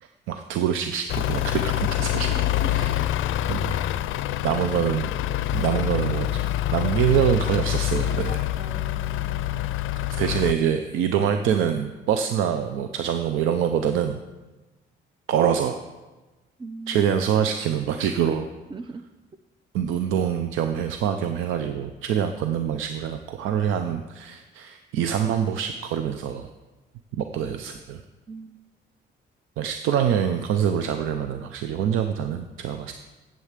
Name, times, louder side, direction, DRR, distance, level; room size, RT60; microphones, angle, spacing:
voice 1, 0.0-2.4 2.7-3.1 3.5-3.8 4.4-5.1 5.5-8.5 10.1-14.2 15.3-15.8 16.9-18.5 19.7-26.5 27.1-28.0 29.6-32.9, right 9 dB, 85° right, 7 dB, 0.6 m, -25 dB
Truck / Idling, 1.1-10.5, left 14 dB, 80° left, 0.4 m, -26 dB
voice 2, 8.6-9.7 10.0-10.1 16.6-17.0 18.7-19.1 28.3-28.6, right 4 dB, 25° right, 13 dB, 0.6 m, -40 dB
8.3 x 7.7 x 7.3 m, 1.2 s
cardioid pair, 90°, 20 cm